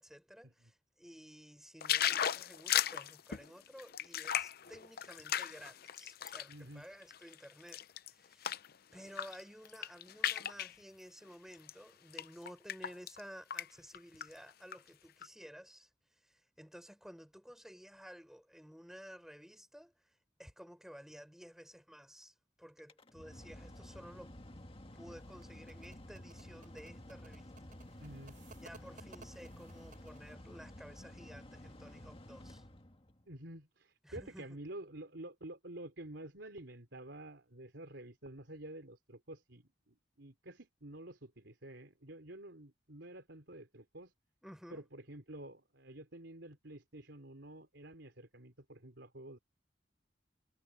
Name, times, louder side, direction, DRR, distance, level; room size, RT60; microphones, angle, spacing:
voice 1, 0.0-8.5 8.9-24.3 24.9-28.0 28.6-32.6 34.0-34.6 44.4-44.9, equal, ahead, 5.9 m, -54 dB
sound 1, 1.8-6.5 7.0-8.7 9.1-9.4 9.7-10.7 11.5-11.7 12.1-13.2 13.5-13.7 13.9-14.8 15.2-15.3, left 10 dB, 55° left, 0.6 m, -36 dB
voice 2, 6.5-6.8 28.0-28.4 33.3-44.1 44.7-49.4, right 1 dB, 70° right, 4.1 m, -50 dB
Mechanical fan, 22.8-33.3, left 1 dB, 30° left, 1.9 m, -52 dB
sound 2, 25.2-30.3, right 4 dB, 45° right, 5.1 m, -59 dB
head